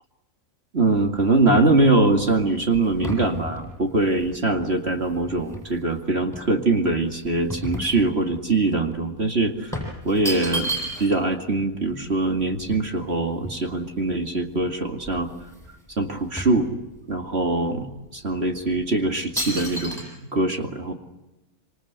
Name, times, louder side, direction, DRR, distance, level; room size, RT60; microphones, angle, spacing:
voice 1, 0.7-10.7 11.0-15.3 16.0-16.7 17.1-17.8 18.1-20.9, right 2 dB, 45° right, 3 dB, 2.5 m, -23 dB
sound 1, 0.8-5.9 6.3-8.5 8.8-9.0 9.7-11.3 11.6-11.7 11.9-14.0 14.6-14.7 14.9-15.7 16.0-17.2 17.8-17.9 18.6-18.8 19.4-20.0, equal, ahead, 8.0 m, -33 dB
27.0 x 26.5 x 8.1 m, 1.0 s
omnidirectional pair, 1.5 m